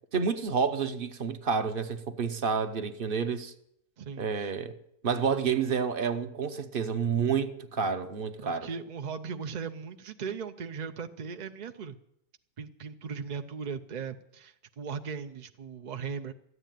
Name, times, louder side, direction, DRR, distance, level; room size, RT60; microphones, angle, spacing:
voice 1, 0.1-3.5 4.2-4.7 5.0-8.7, right 6 dB, 45° right, 0.9 m, -29 dB
voice 2, 4.0-4.5 8.4-12.0 12.6-16.3, right 6 dB, 60° right, 0.4 m, -38 dB
14.0 x 9.8 x 9.2 m
omnidirectional pair, 1.6 m